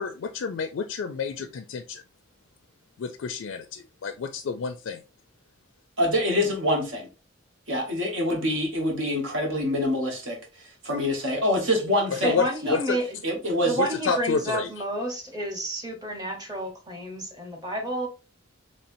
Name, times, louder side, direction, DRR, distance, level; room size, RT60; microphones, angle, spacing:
voice 1, 0.0-2.0 3.0-5.0 12.1-13.0 13.8-14.7, left 5 dB, 70° left, 0.4 m, -29 dB
voice 2, 6.0-7.1 7.7-12.4 12.6-12.8 13.2-13.8, left 1 dB, 70° right, 1.3 m, -25 dB
voice 3, 12.2-13.0 13.6-18.1, right 1 dB, 20° right, 0.9 m, -30 dB
4.2 x 3.2 x 2.6 m
head